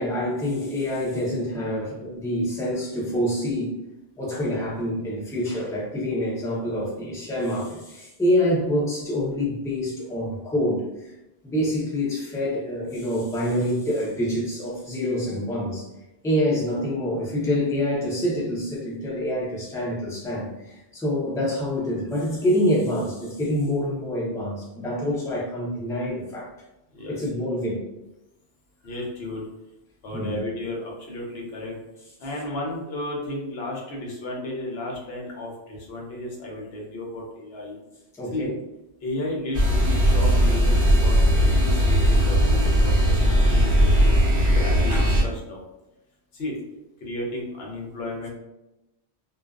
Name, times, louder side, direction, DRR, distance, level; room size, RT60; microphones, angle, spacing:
voice 1, 0.0-3.8 4.2-11.1 11.4-15.9 16.2-26.5 27.1-27.8 30.1-30.3 38.2-38.5, equal, 5° left, -5 dB, 0.4 m, -26 dB
voice 2, 28.8-29.4 30.0-31.8 32.2-37.8 38.3-38.5 39.0-45.6 46.3-46.6 47.0-48.3, left 1 dB, 65° left, -2 dB, 0.9 m, -33 dB
sound 1, 39.5-45.2, equal, 55° right, 0.8 m, -18 dB
2.4 x 2.3 x 2.3 m, 0.93 s
omnidirectional pair, 1.2 m